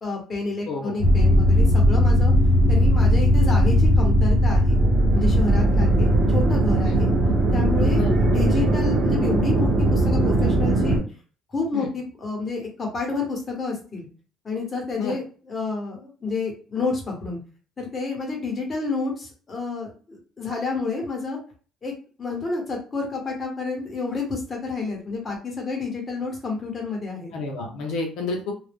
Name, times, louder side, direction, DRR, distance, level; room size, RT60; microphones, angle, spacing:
voice 1, 0.0-2.3 2.7-4.8 5.1-7.1 7.5-11.0 11.5-14.0 14.4-17.4 17.8-21.4 21.8-21.9 22.2-27.3, left 4 dB, 25° left, 0 dB, 1.1 m, -29 dB
sound 1, 1.0-11.0, equal, 35° right, 0.9 m, -18 dB
voice 2, 27.3-28.5, left 3 dB, 85° left, 1 dB, 0.7 m, -30 dB
2.3 x 2.0 x 3.4 m, 0.38 s
cardioid pair, 125°, 0 cm